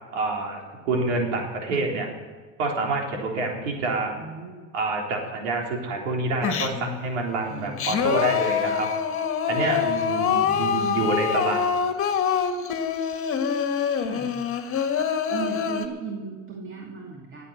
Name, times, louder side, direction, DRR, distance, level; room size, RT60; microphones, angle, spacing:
voice 1, 0.1-2.1 2.6-4.2 4.7-8.9 9.5-11.7, right 3 dB, 85° right, 0 dB, 3.8 m, -27 dB
voice 2, 4.1-4.7 10.3-11.1 14.0-14.4 15.3-17.5, right 5 dB, 35° right, 0 dB, 2.5 m, -36 dB
Singing, 6.4-7.0 7.5-15.9, left 7 dB, 40° left, 1.9 m, -25 dB
20.0 x 8.2 x 6.6 m, 1.5 s
supercardioid pair, 95°, 36 cm